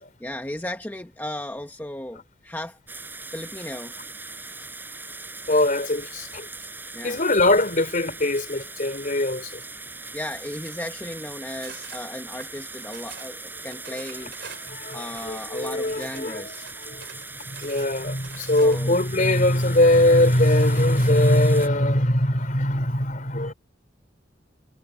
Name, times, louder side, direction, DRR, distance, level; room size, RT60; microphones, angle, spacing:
voice 1, 0.2-2.8 3.3-3.9 6.9-7.2 10.1-14.4 14.9-16.7 18.4-19.0, left 1 dB, 10° left, 1.0 m, -35 dB
sound 1, 2.9-21.7, right 3 dB, 10° right, 4.9 m, -40 dB
voice 2, 5.5-6.5 7.0-9.6 14.6-16.5 16.8-17.1 17.4-23.5, left 1 dB, 45° left, 3.5 m, -21 dB
sound 2, 11.6-12.0 12.4-13.3 13.7-16.2 16.5-19.0, right 7 dB, 60° right, 4.4 m, -45 dB
head